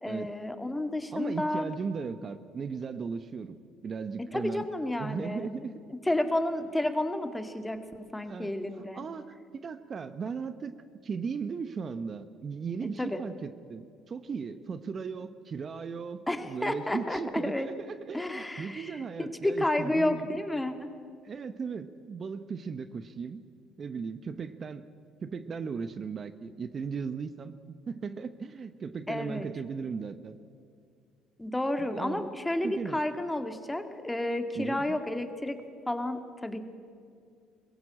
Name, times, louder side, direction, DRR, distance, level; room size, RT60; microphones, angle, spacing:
voice 1, 0.0-1.7 4.3-5.5 6.1-9.0 13.0-13.2 16.3-17.7 18.1-19.0 19.4-20.9 29.1-29.5 31.4-35.6 35.9-36.6, left 1 dB, 10° left, 7 dB, 2.1 m, -31 dB
voice 2, 1.1-3.6 3.8-4.7 5.0-5.7 8.2-10.7 11.0-20.4 21.2-23.4 23.8-24.8 25.2-27.5 27.9-30.4 31.8-32.3 32.6-33.0 34.6-35.0, right 5 dB, 40° right, 12 dB, 0.9 m, -37 dB
21.5 x 16.0 x 8.7 m, 2.3 s
hypercardioid pair, 65°, 0 cm